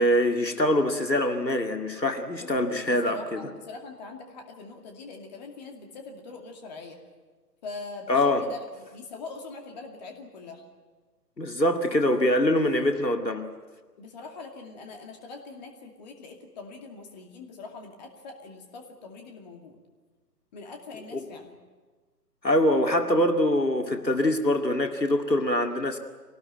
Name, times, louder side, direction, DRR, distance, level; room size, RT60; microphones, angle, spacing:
voice 1, 0.0-3.4 8.1-8.5 11.4-13.5 21.1-21.2 22.4-26.0, left 1 dB, 90° left, 5 dB, 2.3 m, -24 dB
voice 2, 2.8-7.0 7.6-10.6 14.0-19.8 20.5-21.6, left 3 dB, 25° left, 3 dB, 2.4 m, -43 dB
24.0 x 19.0 x 9.2 m, 1.4 s
figure-of-eight pair, 140°, 49 cm